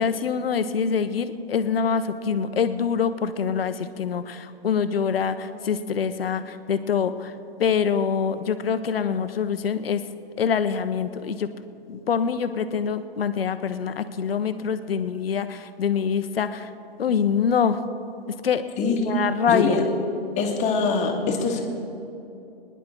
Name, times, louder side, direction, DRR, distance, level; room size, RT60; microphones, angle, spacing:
voice 1, 0.0-7.3 7.6-10.0 10.4-11.5 11.9-16.7 17.0-17.8 18.4-18.6 19.1-19.8, left 6 dB, 70° left, 11 dB, 0.9 m, -25 dB
voice 2, 18.8-19.1 19.5-19.8 20.4-21.6, left 4 dB, 25° left, 1 dB, 1.9 m, -23 dB
23.5 x 10.5 x 3.8 m, 2.7 s
hypercardioid pair, 125°, 30 cm